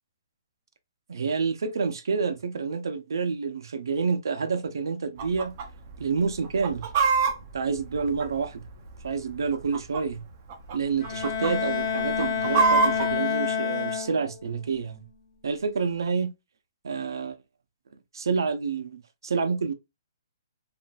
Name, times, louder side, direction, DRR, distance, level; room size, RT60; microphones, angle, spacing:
voice 1, 1.1-5.5 6.0-6.9 7.5-8.6 9.0-10.2 10.7-15.0 15.4-16.3 16.8-17.4 18.1-19.7, right 5 dB, 90° right, 0.5 m, -28 dB
Chicken rooster, 5.2-5.7 5.9-6.0 6.4-8.7 9.4-10.2 10.5-10.8 11.0-11.5 12.0-13.1, right 5 dB, 35° right, 0.6 m, -24 dB
Bowed string instrument, 11.0-14.5, left 7 dB, 60° left, 0.9 m, -28 dB
2.9 x 2.5 x 2.3 m
hypercardioid pair, 160°, 2 cm